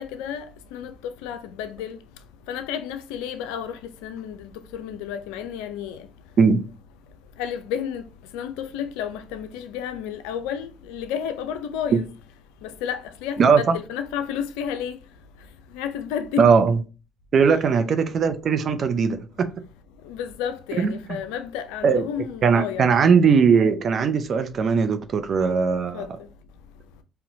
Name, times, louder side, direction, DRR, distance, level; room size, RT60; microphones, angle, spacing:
voice 1, 0.0-2.0 2.5-6.1 7.4-8.1 8.3-12.1 12.6-15.0 15.7-16.5 20.0-23.0 25.9-26.1, left 8 dB, 80° left, 0.4 m, -31 dB
voice 2, 13.4-13.8 16.4-16.8 17.3-19.5 20.8-21.2 21.8-22.0 22.4-26.1, right 5 dB, 55° right, 0.5 m, -19 dB
4.2 x 2.8 x 2.6 m
hypercardioid pair, 60°, 0 cm